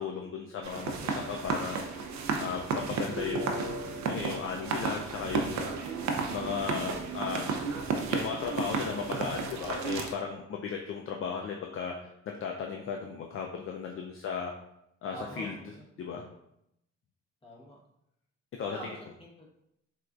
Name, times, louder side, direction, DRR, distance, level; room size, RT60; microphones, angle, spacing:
voice 1, 0.0-1.8 2.4-3.7 4.1-5.7 6.3-7.5 8.1-14.5 15.0-15.5 16.0-16.2 18.6-18.8, left 6 dB, 45° left, 1 dB, 0.4 m, -36 dB
sound 1, 0.6-10.1, right 4 dB, 65° right, 0.6 m, -33 dB
voice 2, 15.1-15.8 17.4-17.8 18.6-19.5, equal, 20° left, -3 dB, 1.1 m, -45 dB
4.2 x 2.5 x 2.4 m, 0.80 s
cardioid pair, 90°, 30 cm